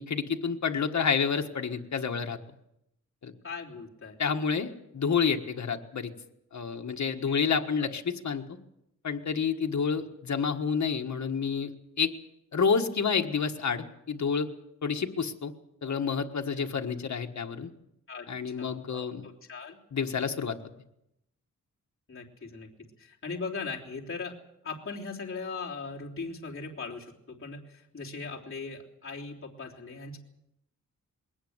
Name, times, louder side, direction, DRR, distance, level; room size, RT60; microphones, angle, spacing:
voice 1, 0.0-2.4 3.2-3.3 4.2-6.1 6.5-8.6 9.0-11.7 12.0-12.1 12.5-14.5 14.8-15.5 15.8-17.7 18.3-19.3 19.9-20.6, left 6 dB, 60° left, 3 dB, 1.6 m, -29 dB
voice 2, 3.4-4.2 6.7-7.4 18.1-18.3 18.6-19.8 22.1-22.7 23.0-24.3 24.6-30.2, left 4 dB, 40° left, -3 dB, 3.4 m, -39 dB
21.0 x 18.5 x 8.0 m, 0.81 s
wide cardioid pair, 150°, 32 cm